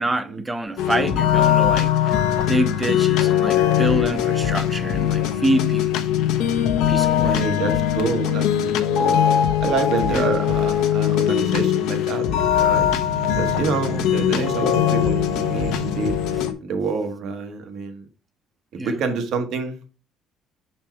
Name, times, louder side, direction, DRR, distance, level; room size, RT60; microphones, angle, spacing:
voice 1, 0.0-6.1 6.9-7.4 10.1-10.3 18.8-19.0, right 1 dB, 15° right, 0.7 m, -26 dB
sound 1, 0.8-16.5, left 9 dB, 80° left, 0.8 m, -21 dB
voice 2, 7.0-9.2 9.6-12.9 13.4-16.1 16.6-18.1 18.7-19.9, right 4 dB, 65° right, 1.2 m, -27 dB
5.6 x 4.4 x 4.5 m
cardioid pair, 120°, 0 cm